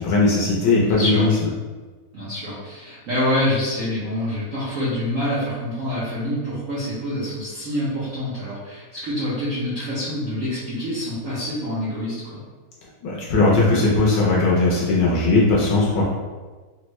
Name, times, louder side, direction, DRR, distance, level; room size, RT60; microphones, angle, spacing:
voice 1, 0.0-1.3 13.0-16.0, left 3 dB, 70° left, -4 dB, 1.1 m, -18 dB
voice 2, 0.8-1.3 2.1-12.4, left 1 dB, 65° right, -10 dB, 0.8 m, -26 dB
3.5 x 2.0 x 3.0 m, 1.3 s
omnidirectional pair, 2.3 m